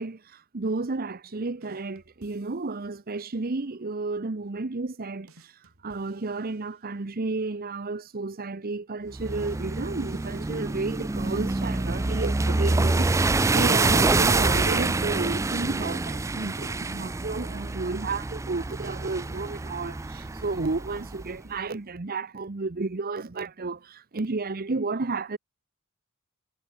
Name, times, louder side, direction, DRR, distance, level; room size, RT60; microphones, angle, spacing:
voice 1, 0.0-25.4, right 3 dB, 45° right, 0.9 m, -32 dB
sound 1, 1.6-3.0 5.3-7.2 9.4-11.5 13.8-15.4, right 2 dB, 70° right, 3.4 m, -59 dB
sound 2, 9.1-21.3, right 3 dB, 15° right, 0.3 m, -26 dB
head